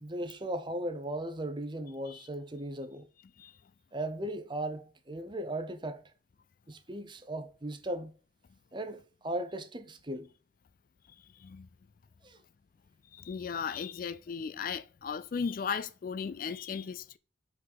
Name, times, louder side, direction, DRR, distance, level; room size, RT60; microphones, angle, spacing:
voice 1, 0.0-3.1 3.9-6.0 6.7-8.1 8.7-10.3 12.2-12.4, right 1 dB, 25° right, 0.7 m, -37 dB
voice 2, 13.1-17.2, left 6 dB, 45° left, 0.3 m, -36 dB
5.3 x 4.1 x 5.3 m
head